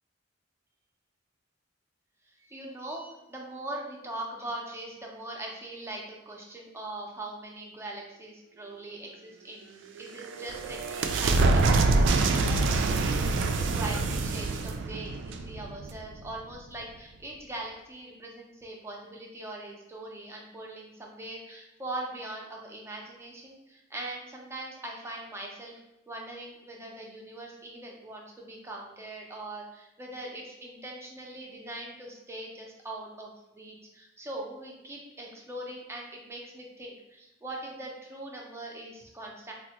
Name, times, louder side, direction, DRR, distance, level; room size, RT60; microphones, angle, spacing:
voice 1, 2.4-25.8 26.1-39.5, right 2 dB, 15° right, -1 dB, 0.5 m, -41 dB
sound 1, 9.9-16.3, right 3 dB, 65° right, 0.3 m, -26 dB
3.7 x 2.1 x 2.9 m, 0.95 s
head